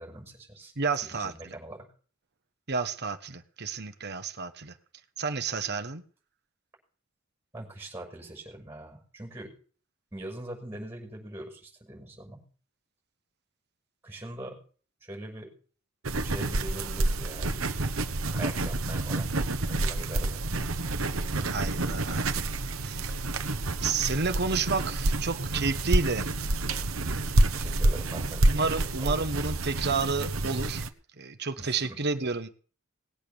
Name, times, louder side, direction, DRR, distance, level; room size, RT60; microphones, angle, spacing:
voice 1, 0.0-0.7 1.0-1.9 7.5-9.5 10.1-12.4 14.0-14.6 15.0-15.5 16.2-17.6 18.3-19.3 19.7-20.4 27.5-29.2 31.6-32.0, right 1 dB, 10° right, 6.1 m, -42 dB
voice 2, 0.8-1.6 2.7-4.7 5.2-6.0 21.4-22.4 22.8-23.2 23.8-26.3 28.5-30.8 31.2-32.5, right 4 dB, 50° right, 1.3 m, -30 dB
sound 1, 16.0-30.9, right 2 dB, 70° right, 1.1 m, -28 dB
19.5 x 8.4 x 7.0 m
head